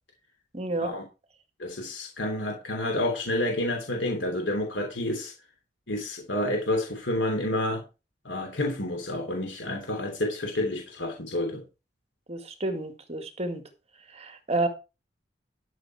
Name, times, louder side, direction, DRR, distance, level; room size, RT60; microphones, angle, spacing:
voice 1, 0.5-0.9 12.3-13.6 14.1-14.7, right 2 dB, 35° right, 1.9 m, -30 dB
voice 2, 1.6-5.3 5.9-7.8 8.2-11.6, left 1 dB, 85° left, 3.0 m, -29 dB
12.5 x 6.7 x 4.7 m
head